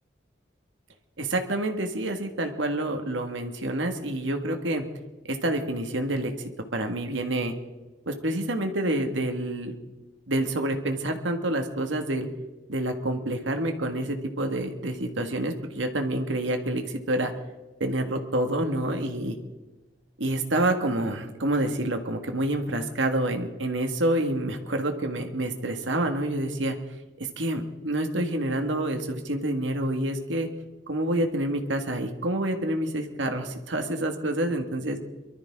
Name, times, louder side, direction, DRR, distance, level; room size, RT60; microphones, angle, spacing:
voice 1, 1.2-4.8 5.3-6.3 6.7-7.5 8.1-9.7 10.3-12.3 12.7-17.3 17.8-19.4 20.2-26.7 27.2-30.5 30.9-35.0, right 1 dB, 90° right, 5 dB, 1.8 m, -28 dB
23.5 x 13.0 x 3.7 m, 1.1 s
head